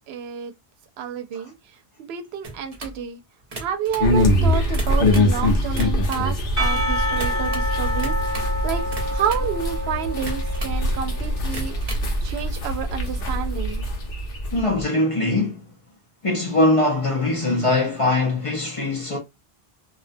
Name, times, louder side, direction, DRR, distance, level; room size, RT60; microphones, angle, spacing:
voice 1, 0.1-0.5 1.0-1.5 2.0-3.2 3.5-8.9 9.1-13.9, right 8 dB, 80° right, 0.8 m, -30 dB
sound 1, 2.4-3.0 3.4-4.1 4.6-5.4 5.7-6.3 7.1-7.7 8.0-8.6 8.9-9.5 10.2-10.8 11.4-12.1, right 2 dB, 40° right, 0.7 m, -36 dB
sound 2, 4.0-14.8, left 1 dB, 65° left, 1.0 m, -23 dB
Percussion / Church bell, 6.6-11.1, equal, 15° left, 0.8 m, -28 dB
voice 2, 14.5-15.6 16.2-19.2, left 2 dB, 40° left, 0.6 m, -21 dB
2.4 x 2.1 x 2.5 m
omnidirectional pair, 1.0 m